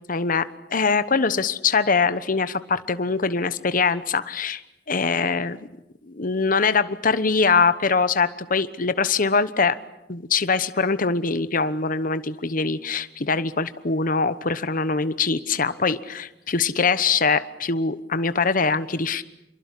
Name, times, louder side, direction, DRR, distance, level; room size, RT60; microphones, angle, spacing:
voice 1, 0.1-4.6 4.9-5.7 6.1-9.8 10.1-19.2, left 4 dB, 50° left, 13 dB, 1.1 m, -23 dB
27.5 x 23.0 x 8.4 m, 0.90 s
head